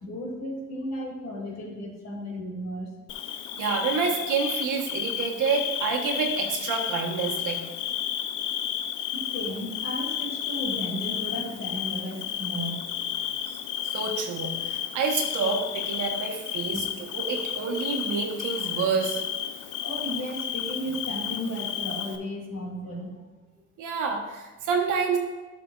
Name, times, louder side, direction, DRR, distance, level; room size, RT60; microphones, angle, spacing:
voice 1, 0.0-2.9 9.1-12.8 16.7-16.8 19.8-23.1, equal, 60° left, -1 dB, 2.5 m, -34 dB
Bird / Cricket, 3.1-22.2, left 10 dB, 90° left, 0.6 m, -32 dB
voice 2, 3.6-7.6 13.8-19.2 23.8-25.2, right 5 dB, 85° right, 2 dB, 1.2 m, -28 dB
11.5 x 5.8 x 2.4 m, 1.2 s
cardioid pair, 90°, 30 cm